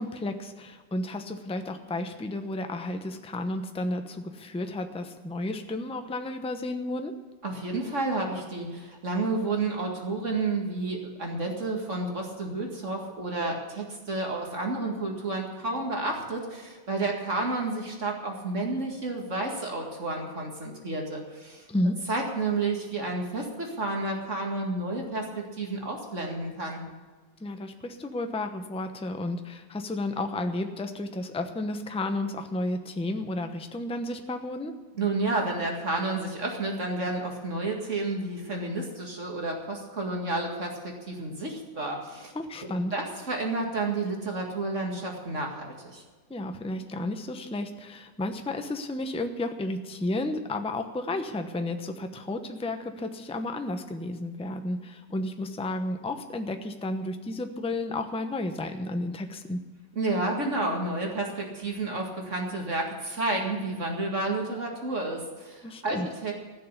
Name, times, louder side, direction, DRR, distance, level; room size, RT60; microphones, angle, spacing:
voice 1, 0.0-7.1 21.7-22.0 27.4-34.7 42.3-42.9 46.3-59.6 65.6-66.1, left 2 dB, 5° left, 7 dB, 0.4 m, -32 dB
voice 2, 7.4-21.7 22.1-25.2 25.5-26.8 34.9-42.3 42.6-46.0 59.9-66.3, right 2 dB, 40° right, 1 dB, 2.3 m, -31 dB
15.5 x 6.7 x 9.7 m, 1.4 s
omnidirectional pair, 2.0 m